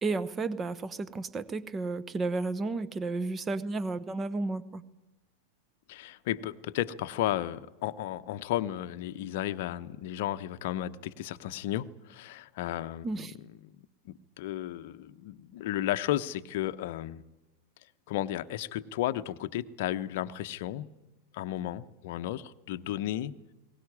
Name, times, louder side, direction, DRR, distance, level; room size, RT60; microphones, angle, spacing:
voice 1, 0.0-4.8 13.0-13.3, right 3 dB, 20° right, 16 dB, 1.0 m, -32 dB
voice 2, 5.9-13.3 14.1-17.2 18.1-20.9 21.3-23.4, left 13 dB, 50° left, 10 dB, 0.8 m, -33 dB
21.5 x 18.5 x 9.8 m, 1.1 s
figure-of-eight pair, 90°, 0 cm